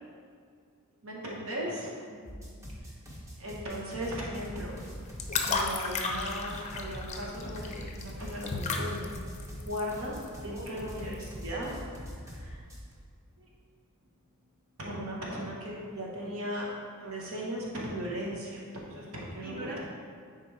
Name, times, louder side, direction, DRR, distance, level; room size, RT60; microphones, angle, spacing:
voice 1, 1.0-1.9 3.4-4.7 5.4-9.2 9.5-10.2 10.4-11.7 12.2-12.6 13.4-13.5 14.8-16.7 17.0-19.7, equal, 70° right, -3 dB, 1.3 m, -37 dB
voice 2, 2.1-2.7 10.5-11.3 19.4-19.8, right 1 dB, 40° right, -4 dB, 1.4 m, -45 dB
sound 1, 2.2-12.9, equal, 15° right, 1.0 m, -43 dB
sound 2, 4.7-11.4, left 4 dB, 30° left, 0.6 m, -35 dB
9.8 x 4.2 x 3.4 m, 2.1 s
head